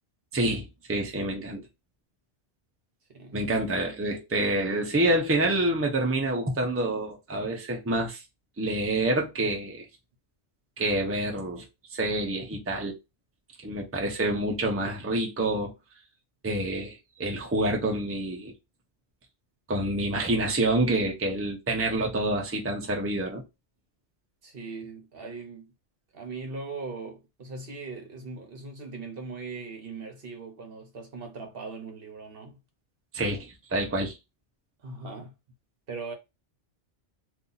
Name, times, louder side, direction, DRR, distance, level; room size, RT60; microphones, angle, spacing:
voice 1, 0.3-1.7 3.3-8.2 8.6-9.8 10.8-11.6 11.9-12.9 13.6-15.7 16.4-16.9 17.2-18.5 19.7-23.4 33.1-34.1, right 1 dB, 15° right, 0.7 m, -27 dB
voice 2, 3.1-3.5 24.4-25.7 26.1-32.6 34.8-35.3 35.9-36.1, right 4 dB, 55° right, 1.0 m, -39 dB
2.7 x 2.5 x 3.9 m
omnidirectional pair, 1.2 m